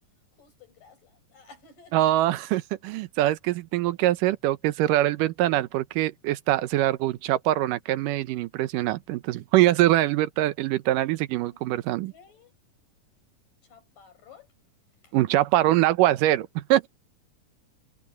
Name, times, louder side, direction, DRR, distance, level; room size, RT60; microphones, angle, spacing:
voice 1, 0.3-2.3 11.4-11.7 12.1-12.5 13.6-14.5 15.0-15.9, left 5 dB, 90° left, 8.0 m, -54 dB
voice 2, 1.9-12.1 15.1-16.9, right 15 dB, 90° right, 2.5 m, -23 dB
omnidirectional pair, 3.7 m